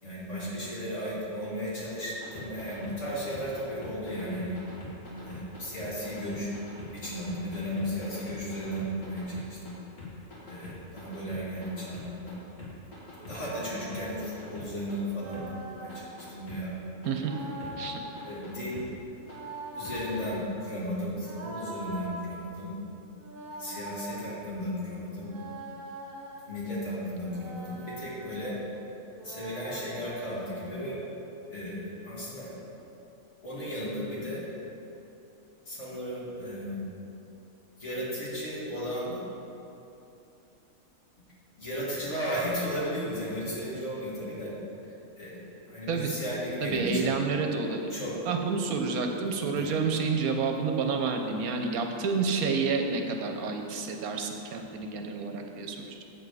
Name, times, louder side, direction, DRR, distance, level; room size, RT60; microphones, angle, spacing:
voice 1, 0.0-4.6 5.2-6.5 6.9-9.8 10.5-12.4 13.3-16.7 17.4-17.7 18.2-18.8 19.7-22.7 23.5-25.3 26.5-28.5 29.2-31.0 31.5-32.6 33.4-34.4 35.7-36.8 37.8-39.2 41.6-44.5 44.8-45.4 45.7-47.1 47.9-48.1 49.5-49.8, equal, 50° left, -8 dB, 2.6 m, -35 dB
sound 1, 2.1-9.7 10.0-12.3 12.6-14.9 15.3-15.4 15.9-16.6 17.0-17.7 18.2-18.8 19.3-19.4 19.8-19.9 20.4-20.5, left 2 dB, 75° left, 2.3 m, -44 dB
sound 2, 13.2-14.2 15.2-16.1 17.2-18.4 19.2-20.4 21.2-22.3 23.2-24.3 25.2-26.5 27.2-28.2 29.2-30.6, right 1 dB, 45° right, 1.0 m, -42 dB
voice 2, 46.6-47.9 48.3-56.0, right 4 dB, 75° right, 4 dB, 1.2 m, -29 dB
7.8 x 7.1 x 4.8 m, 2.9 s
omnidirectional pair, 1.6 m